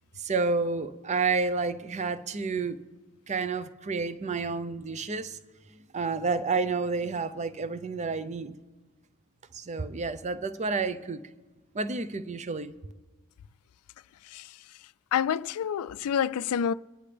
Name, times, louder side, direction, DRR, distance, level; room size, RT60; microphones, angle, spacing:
voice 1, 0.2-2.8 3.3-5.4 5.9-8.6 9.5-11.2 11.7-12.7, right 4 dB, 30° right, 0.6 m, -30 dB
voice 2, 15.1-16.7, left 8 dB, 90° left, 0.3 m, -27 dB
24.0 x 10.0 x 3.4 m
head